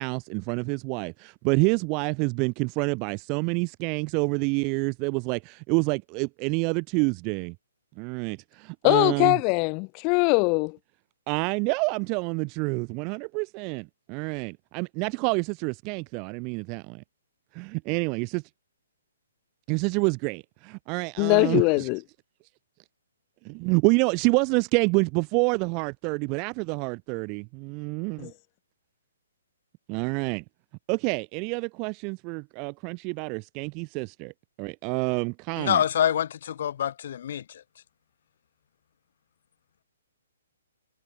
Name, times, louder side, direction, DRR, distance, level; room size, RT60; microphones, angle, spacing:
voice 1, 0.0-7.5 8.0-9.4 11.3-17.0 17.5-18.4 19.7-21.9 23.4-28.3 29.9-30.4 30.9-34.3 34.6-35.8, right 33 dB, 30° right, 0.9 m, -27 dB
voice 2, 8.8-10.8 21.2-22.0 28.2-28.3, left 33 dB, 30° left, 0.7 m, -22 dB
voice 3, 35.6-37.4, left 9 dB, 55° left, 1.1 m, -26 dB
hypercardioid pair, 145°, 0 cm